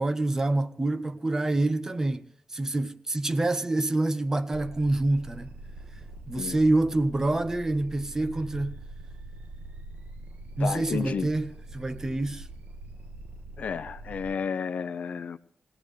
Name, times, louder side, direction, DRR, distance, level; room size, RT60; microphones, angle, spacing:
voice 1, 0.0-2.2 2.5-5.5 6.3-8.8 10.6-12.5, right 2 dB, 20° right, 0.7 m, -26 dB
sound 1, 4.5-14.3, right 2 dB, 75° right, 1.4 m, -44 dB
voice 2, 10.6-11.3 13.6-15.4, left 6 dB, 55° left, 0.6 m, -32 dB
21.5 x 18.0 x 3.2 m
wide cardioid pair, 175°, 3 cm